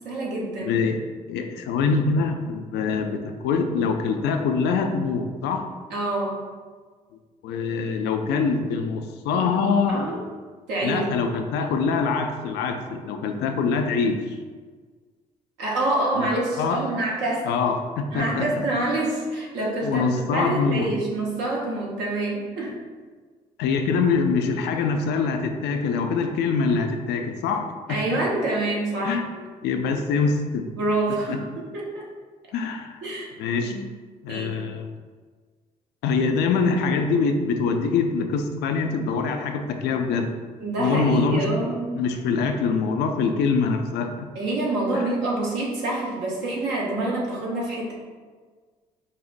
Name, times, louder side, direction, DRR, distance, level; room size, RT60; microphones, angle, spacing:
voice 1, 0.0-0.8 5.9-6.4 9.3-9.5 9.9-10.2 10.7-11.1 15.6-17.5 18.1-22.8 27.9-29.2 30.8-32.1 33.0-33.3 33.6-33.8 34.3-34.5 40.6-42.0 44.3-47.9, right 2 dB, 65° right, -3 dB, 1.0 m, -27 dB
voice 2, 0.6-1.0 1.3-5.7 7.4-10.1 10.8-14.4 16.2-16.3 16.6-16.8 17.4-18.7 19.8-20.9 23.6-27.7 29.0-29.2 29.6-30.7 31.3-31.4 32.5-33.0 33.4-33.7 34.2-34.9 36.0-40.3 40.8-44.3 45.0-45.1, left 4 dB, 60° left, 5 dB, 0.4 m, -24 dB
5.2 x 2.0 x 2.5 m, 1.5 s
figure-of-eight pair, 45°, 20 cm